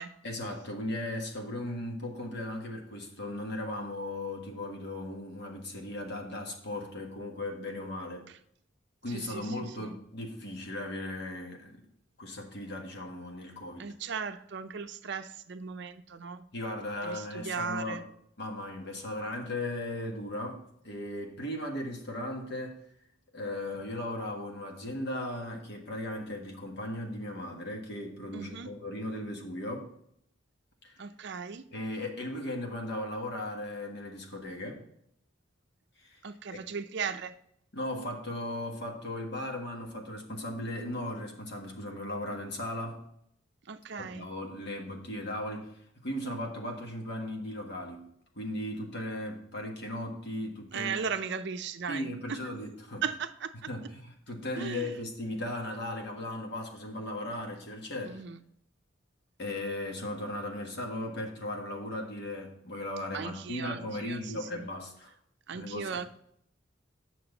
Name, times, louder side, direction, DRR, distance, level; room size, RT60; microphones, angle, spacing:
voice 1, 0.2-8.3 9.0-11.8 12.2-13.8 16.5-18.0 18.4-22.8 23.3-29.9 30.8-31.0 31.7-34.8 36.0-36.2 36.5-36.6 37.7-43.0 44.0-48.1 48.3-51.0 51.9-53.0 53.7-58.2 59.4-65.1 65.5-66.1, left 1 dB, 55° left, 1 dB, 1.6 m, -37 dB
voice 2, 9.1-9.5 9.8-9.9 13.8-16.4 17.0-18.0 28.3-28.7 31.0-31.6 36.2-37.4 43.6-44.3 50.7-52.4 53.0-53.7 54.6-55.0 58.1-58.4 63.1-64.7 65.5-66.1, right 6 dB, 60° right, 10 dB, 0.5 m, -37 dB
8.7 x 6.5 x 3.9 m, 0.71 s
head